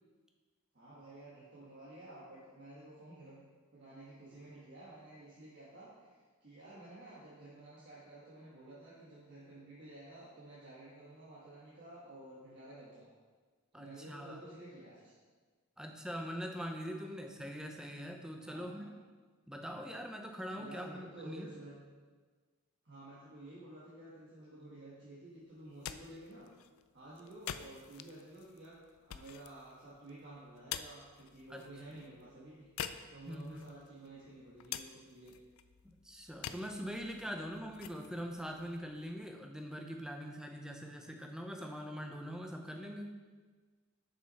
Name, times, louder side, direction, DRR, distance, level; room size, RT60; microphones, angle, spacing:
voice 1, 0.7-3.5 3.7-13.1 13.7-15.1 18.4-18.9 20.6-21.8 22.8-26.5 26.9-32.7 33.1-35.4, right 1 dB, 50° right, -8 dB, 1.3 m, -52 dB
voice 2, 13.7-14.4 15.8-18.9 19.5-21.5 31.5-31.6 31.9-32.0 33.3-33.6 35.8-43.2, equal, 5° right, 3 dB, 0.5 m, -43 dB
sound 1, 25.6-39.5, left 9 dB, 70° left, 0.3 m, -49 dB
6.5 x 5.6 x 4.1 m, 1.4 s
head